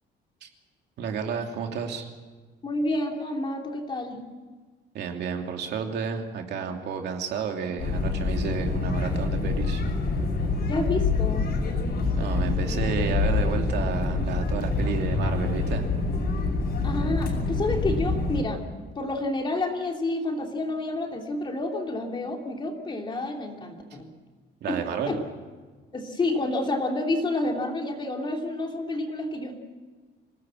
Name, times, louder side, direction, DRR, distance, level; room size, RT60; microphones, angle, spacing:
voice 1, 1.0-2.1 4.9-9.8 12.2-15.8 24.6-25.2, right 6 dB, 60° right, 3 dB, 2.8 m, -31 dB
voice 2, 2.6-4.2 10.7-11.5 16.8-18.7 18.9-24.1 24.7-25.2 25.9-29.5, left 2 dB, 25° left, 2 dB, 2.9 m, -29 dB
sound 1, 7.8-18.4, left 3 dB, 55° left, 5.9 m, -26 dB
26.5 x 18.5 x 7.6 m, 1.4 s
cardioid pair, 170°, 19 cm